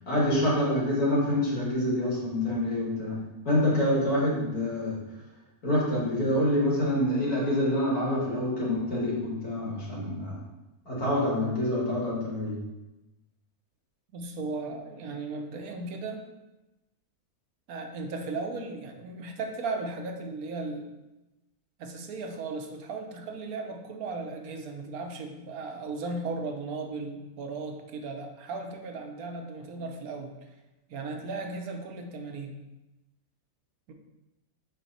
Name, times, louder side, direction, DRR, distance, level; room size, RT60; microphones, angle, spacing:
voice 1, 0.1-3.2 3.4-5.0 5.6-10.4 10.9-12.6, left 1 dB, 80° left, -6 dB, 3.1 m, -26 dB
voice 2, 14.1-16.2 17.7-20.9 21.8-30.3 30.9-32.6 33.9-34.0, right 3 dB, 80° right, 4 dB, 1.3 m, -36 dB
7.6 x 4.5 x 4.1 m, 1.0 s
omnidirectional pair, 1.6 m